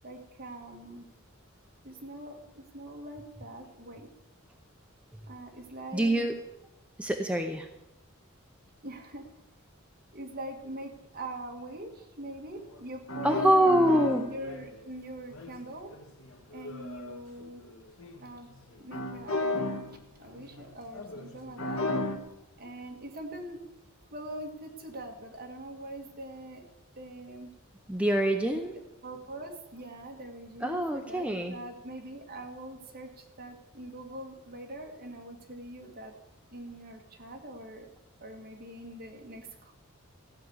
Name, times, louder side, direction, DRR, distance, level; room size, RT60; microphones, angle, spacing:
voice 1, 0.0-1.1 1.8-4.1 5.3-6.3 8.8-9.3 10.1-15.9 16.5-17.6 18.2-18.5 18.8-21.9 22.6-23.6 24.1-26.6 27.0-27.5 29.0-36.1 36.5-37.9 38.2-39.7, right 1 dB, 45° right, 2 dB, 1.9 m, -43 dB
voice 2, 5.9-6.3 7.0-7.7 13.2-14.2 27.9-28.7 30.6-31.6, right 1 dB, 5° right, 4 dB, 0.6 m, -25 dB
sound 1, 12.7-12.8 13.1-14.8 15.3-18.3 18.7-20.0 20.2-22.2, left 2 dB, 70° left, 1.6 m, -34 dB
15.0 x 6.0 x 9.5 m, 0.94 s
head